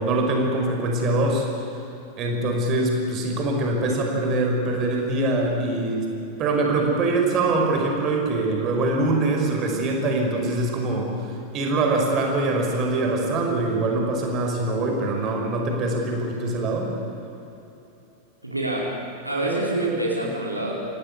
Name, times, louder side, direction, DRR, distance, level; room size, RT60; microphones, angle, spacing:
voice 1, 0.0-1.5 2.1-6.1 6.4-16.9, right 2 dB, 35° right, 1 dB, 5.0 m, -23 dB
voice 2, 18.4-18.9 19.2-20.7, right 2 dB, 85° right, -3 dB, 4.3 m, -26 dB
27.5 x 17.5 x 8.4 m, 2.9 s
figure-of-eight pair, 90°, 0 cm